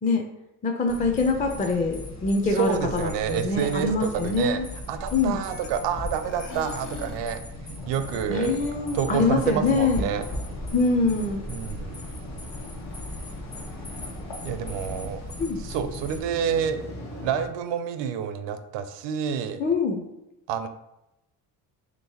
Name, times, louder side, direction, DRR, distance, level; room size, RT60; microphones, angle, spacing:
voice 1, 0.6-4.6 5.1-5.4 8.3-10.1 10.7-11.4 15.4-15.6 19.6-20.0, left 3 dB, 20° left, 3 dB, 0.4 m, -24 dB
sound 1, 0.9-16.2, left 1 dB, 35° left, 0.8 m, -38 dB
voice 2, 2.5-4.6 4.9-8.6 8.9-10.3 11.5-12.0 14.4-15.2 15.6-16.8 17.2-19.6 20.5-20.7, right 8 dB, 70° right, 9 dB, 0.5 m, -28 dB
sound 2, 3.7-3.9 4.1-5.9 6.2-7.4, left 6 dB, 65° left, 0.7 m, -43 dB
sound 3, 7.7-17.5, left 1 dB, 80° left, 1.0 m, -41 dB
3.2 x 3.0 x 2.8 m, 0.89 s
supercardioid pair, 65°, 46 cm